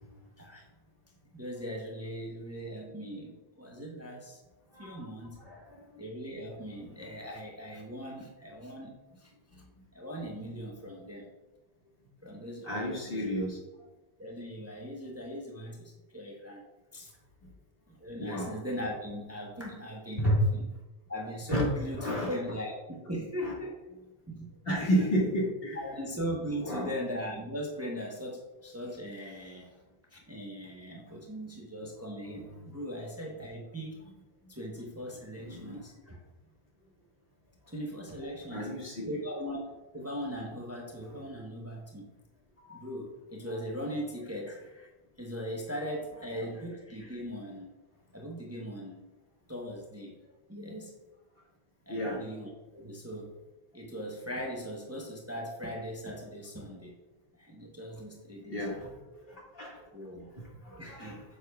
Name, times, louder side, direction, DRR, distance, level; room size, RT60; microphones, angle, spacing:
voice 1, 1.3-4.4 4.8-5.4 6.0-8.9 9.2-9.3 9.9-11.3 12.2-13.2 14.2-16.6 16.9-17.1 17.9-20.7 21.1-23.8 24.3-24.5 24.8-25.0 25.7-29.8 30.1-34.0 34.5-36.2 37.7-38.8 39.0-39.6 39.9-42.1 42.7-44.9 45.2-47.7 48.1-49.1 49.5-50.9 51.9-53.4 53.7-56.9 57.3-58.7 59.9-60.3 60.8-61.2, equal, 15° right, -1 dB, 0.8 m, -39 dB
voice 2, 5.4-5.8 12.6-13.6 18.2-18.5 20.2-20.4 21.5-21.6 22.0-22.3 23.4-23.5 24.7-25.8 26.6-26.9 32.5-32.6 35.4-35.8 38.5-39.1 42.7-42.8 51.9-52.2 58.5-58.9 59.3-59.8 60.4-61.2, equal, 60° left, -4 dB, 1.9 m, -31 dB
8.8 x 6.6 x 2.3 m, 1.1 s
omnidirectional pair, 1.1 m